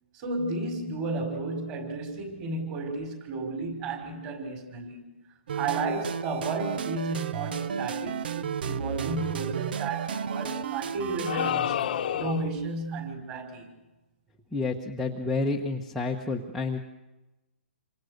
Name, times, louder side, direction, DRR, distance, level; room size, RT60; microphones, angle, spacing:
voice 1, 0.1-5.0 5.5-13.7, right 3 dB, 25° right, 5.4 m, -33 dB
sound 1, 5.5-11.5, right 8 dB, 50° right, 0.8 m, -33 dB
sound 2, 11.3-12.6, left 10 dB, 45° left, 1.1 m, -29 dB
voice 2, 14.5-16.8, left 3 dB, ahead, 1.2 m, -29 dB
28.0 x 25.5 x 6.7 m
hypercardioid pair, 165°, 7 cm